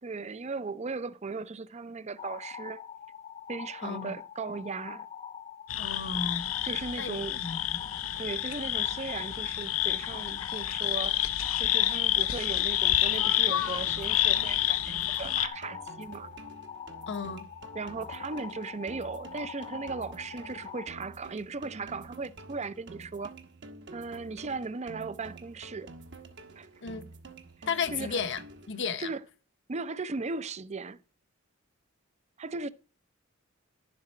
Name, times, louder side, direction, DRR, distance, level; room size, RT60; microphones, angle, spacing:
voice 1, 0.0-2.8 3.5-5.1 6.6-7.5 8.2-11.2 11.6-16.3 17.7-23.3 23.9-25.9 26.6-26.7 27.6-28.2 29.0-29.2 29.7-31.0 32.4-32.7, right 4 dB, 35° right, 0.5 m, -37 dB
sound 1, 2.2-20.9, left 8 dB, 35° left, 0.9 m, -44 dB
voice 2, 3.8-4.2 5.8-6.5 7.0-7.8 17.1-17.5 26.8-27.0 27.7-28.4 28.7-29.1, left 5 dB, 60° left, 1.0 m, -34 dB
sound 2, 5.7-15.5, left 13 dB, 85° left, 0.8 m, -29 dB
sound 3, 12.9-28.9, right 3 dB, 60° right, 1.2 m, -49 dB
10.5 x 7.6 x 4.3 m
head